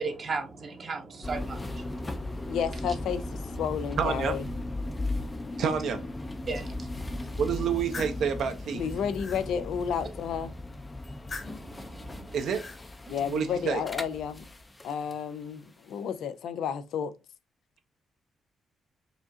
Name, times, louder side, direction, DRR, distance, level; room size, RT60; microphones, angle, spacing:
voice 1, 0.0-2.6 6.5-7.4 11.4-12.3 13.2-13.3, right 4 dB, 40° right, 0.8 m, -37 dB
sound 1, 1.2-15.2, left 2 dB, 20° left, 0.5 m, -37 dB
voice 2, 2.4-4.4 8.7-10.5 13.1-14.5 14.8-17.1, left 7 dB, 80° left, 0.4 m, -31 dB
voice 3, 4.0-4.4 5.6-6.0 7.4-8.8 12.3-12.6 13.3-13.8, right 7 dB, 70° right, 0.7 m, -28 dB
sound 2, 7.5-8.2 8.8-9.4 11.0-11.7 12.3-12.8, left 3 dB, 35° left, 1.1 m, -42 dB
4.9 x 2.4 x 2.6 m
cardioid pair, 125°, 0 cm